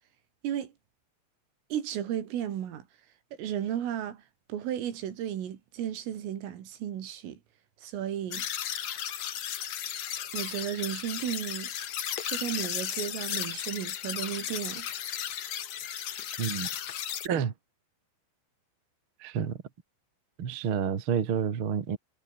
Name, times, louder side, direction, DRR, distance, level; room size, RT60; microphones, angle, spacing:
voice 1, 1.7-2.9 3.4-4.2 4.5-7.4 7.8-8.5 10.3-11.7 12.2-14.9, right 10 dB, 80° right, 5.4 m, -34 dB
sound 1, 8.3-17.3, left 10 dB, 85° left, 1.5 m, -35 dB
voice 2, 16.4-16.7 17.2-17.5 19.2-19.6 20.4-22.0, right 7 dB, 55° right, 1.4 m, -29 dB
omnidirectional pair, 5.8 m